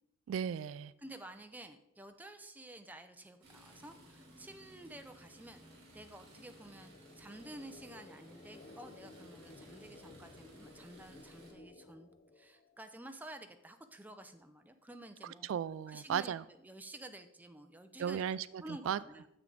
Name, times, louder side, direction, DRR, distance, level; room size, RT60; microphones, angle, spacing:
voice 1, 0.3-0.9 15.2-16.4 18.0-19.0, right 8 dB, 75° right, 18 dB, 0.3 m, -36 dB
voice 2, 1.0-5.6 5.9-12.1 12.4-15.5 15.9-16.3 16.6-18.2 18.6-19.3, right 1 dB, 10° right, 7 dB, 0.5 m, -51 dB
sound 1, 3.4-11.5, right 1 dB, 55° right, 3.3 m, -58 dB
sound 2, 4.0-12.9, left 2 dB, 40° left, 0.4 m, -58 dB
9.4 x 6.9 x 3.9 m, 0.84 s
head